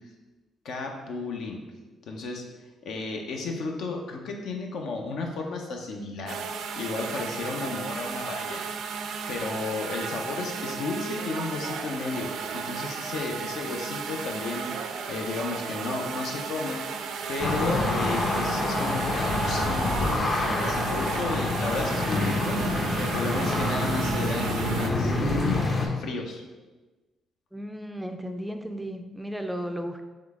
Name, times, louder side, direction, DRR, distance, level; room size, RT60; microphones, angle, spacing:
voice 1, 0.6-1.6 2.1-2.4 2.8-6.4 6.8-8.6 9.3-17.0 17.3-26.4, left 3 dB, 75° left, 2 dB, 0.6 m, -33 dB
sound 1, 6.3-24.9, right 5 dB, 80° right, 0.4 m, -34 dB
sound 2, 17.4-25.9, left 2 dB, 40° left, 0.7 m, -27 dB
voice 2, 27.5-30.0, equal, 5° right, 6 dB, 0.3 m, -34 dB
3.8 x 3.1 x 3.5 m, 1.2 s
cardioid pair, 90°, 0 cm